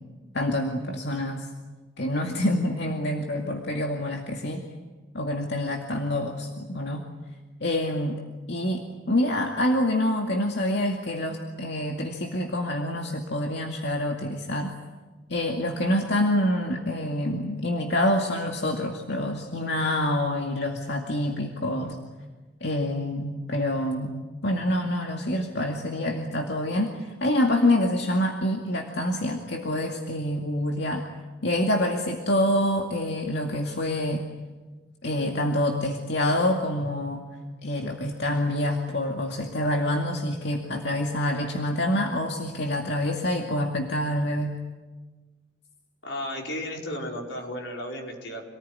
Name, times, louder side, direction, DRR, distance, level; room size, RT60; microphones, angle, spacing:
voice 1, 0.3-1.5 2.0-4.6 5.1-7.1 7.6-8.2 8.5-14.7 15.3-22.0 22.6-31.1 31.4-34.3 35.0-37.3 37.6-44.5, left 1 dB, 65° left, 1 dB, 2.3 m, -26 dB
voice 2, 46.0-48.4, left 1 dB, 85° left, 0 dB, 5.2 m, -34 dB
27.5 x 19.0 x 9.9 m, 1.3 s
head